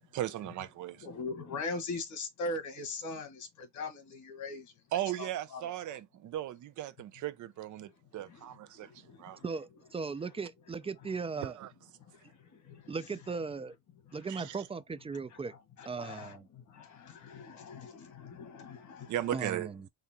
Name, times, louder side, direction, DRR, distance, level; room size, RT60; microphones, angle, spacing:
voice 1, 0.1-1.1 4.9-9.4 11.4-11.7 14.3-14.6 19.1-19.7, right 13 dB, 75° right, 0.7 m, -37 dB
voice 2, 1.0-3.4 3.7-4.6 4.9-5.7 15.8-16.4 17.1-19.1, left 3 dB, 75° left, 1.6 m, -39 dB
voice 3, 9.4-11.6 12.9-13.8 14.1-15.5 15.9-16.5 19.3-19.9, right 4 dB, 20° right, 0.4 m, -37 dB
4.1 x 3.4 x 2.9 m
cardioid pair, 90°, 30 cm